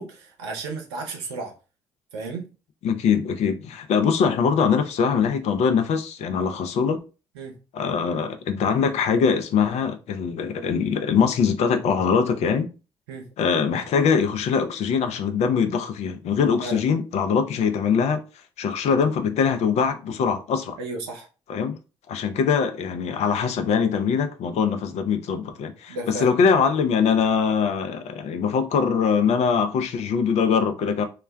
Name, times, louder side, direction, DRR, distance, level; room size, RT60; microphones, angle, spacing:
voice 1, 0.0-1.5 2.1-2.4 7.3-7.6 13.1-13.3 16.6-16.8 20.8-21.3 25.9-26.4, right 3 dB, 85° right, 0.7 m, -33 dB
voice 2, 2.8-7.0 7.7-12.7 13.4-18.2 18.6-20.8 21.5-21.8 22.1-31.1, left 6 dB, 55° left, 0.5 m, -22 dB
2.2 x 2.1 x 3.3 m
hypercardioid pair, 45°, 13 cm